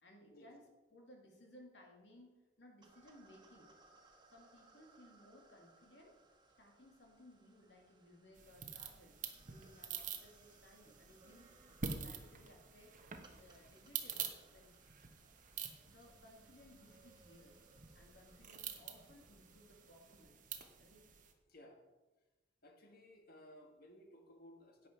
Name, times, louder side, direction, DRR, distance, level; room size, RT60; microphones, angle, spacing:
voice 1, 0.0-2.3 2.6-3.7 4.3-6.1 6.6-9.1 9.4-11.5 11.8-14.8 15.2-15.3 15.6-17.6 17.9-20.4 20.8-21.1, left 1 dB, 80° left, 0 dB, 2.5 m, -62 dB
sound 1, 2.8-20.2, right 2 dB, 25° right, 1.3 m, -67 dB
sound 2, 8.4-21.3, right 6 dB, 45° right, 1.1 m, -48 dB
voice 2, 21.5-21.8 22.6-24.9, left 1 dB, 55° left, 3 dB, 1.7 m, -59 dB
11.0 x 8.2 x 4.5 m, 1.1 s
head